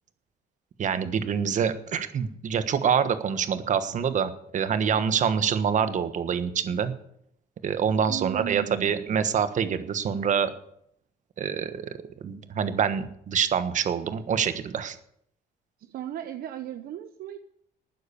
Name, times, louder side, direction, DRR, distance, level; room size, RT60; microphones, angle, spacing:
voice 1, 0.8-6.9 7.6-10.5 11.4-15.0, right 7 dB, 45° right, 11 dB, 1.4 m, -26 dB
voice 2, 8.1-9.0 15.8-17.4, right 12 dB, 65° right, 9 dB, 0.9 m, -36 dB
12.5 x 9.4 x 7.0 m, 0.71 s
cardioid pair, 110°, 17 cm